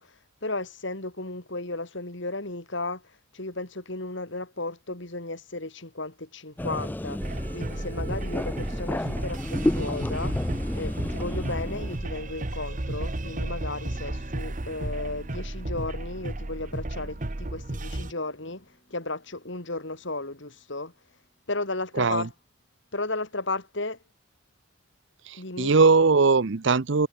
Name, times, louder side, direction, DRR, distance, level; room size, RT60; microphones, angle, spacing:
voice 1, 0.0-10.4 10.7-20.9 21.5-22.3 22.9-24.0 25.4-25.8, left 2 dB, 60° left, 2.8 m, -34 dB
sound 1, 6.6-12.0, left 1 dB, 10° left, 0.3 m, -31 dB
sound 2, 7.2-18.1, right 1 dB, 35° right, 1.2 m, -33 dB
Bass guitar, 13.9-22.0, equal, 25° left, 3.9 m, -59 dB
voice 2, 21.9-22.3 25.3-27.1, right 4 dB, 60° right, 0.7 m, -20 dB
head